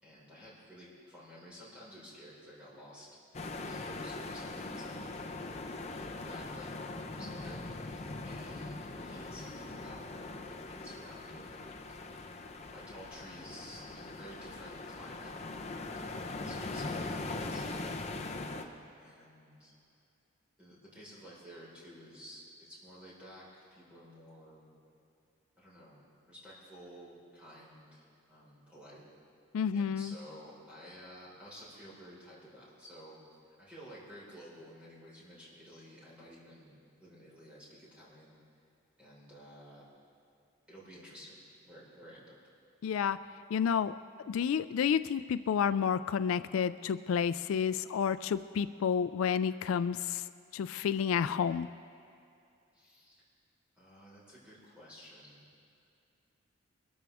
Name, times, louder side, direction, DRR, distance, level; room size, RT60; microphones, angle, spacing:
voice 1, 0.0-3.1 3.7-5.4 5.7-6.7 7.1-8.0 8.2-11.6 12.7-17.9 18.2-19.7 20.6-24.7 25.6-26.0 26.3-29.0 29.7-33.2 33.5-38.4 39.0-39.8 40.7-42.4 52.7-53.2 53.8-55.5, equal, 5° right, -8 dB, 4.6 m, -52 dB
sound 1, 3.3-18.7, left 2 dB, 30° left, 0.8 m, -41 dB
voice 2, 29.5-30.1 42.8-43.2 43.5-44.0 44.3-50.3 50.5-51.7, left 7 dB, 75° left, 14 dB, 0.3 m, -30 dB
23.0 x 13.5 x 3.5 m, 2.6 s
head